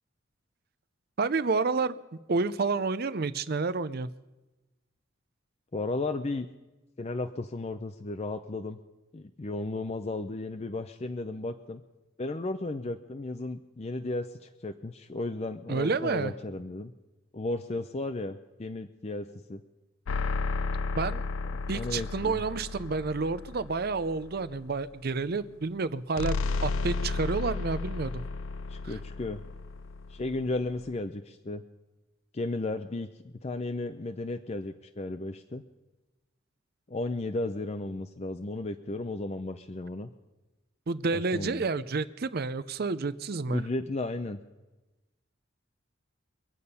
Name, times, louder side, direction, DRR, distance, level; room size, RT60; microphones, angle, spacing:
voice 1, 1.2-2.0 2.3-4.1 15.7-16.3 20.9-21.2 21.7-28.2 28.8-28.9 40.9-43.6, right 4 dB, 50° right, 15 dB, 0.5 m, -29 dB
voice 2, 5.7-6.5 7.0-8.8 9.1-11.8 12.2-16.9 17.3-19.6 21.7-22.4 28.7-29.4 30.1-31.6 32.3-35.6 36.9-40.1 41.1-41.6 43.5-44.4, left 2 dB, 30° left, 7 dB, 0.5 m, -34 dB
sound 1, 20.1-24.6 26.2-30.9, left 3 dB, 90° left, 0.5 m, -33 dB
24.5 x 8.5 x 5.5 m, 1.1 s
head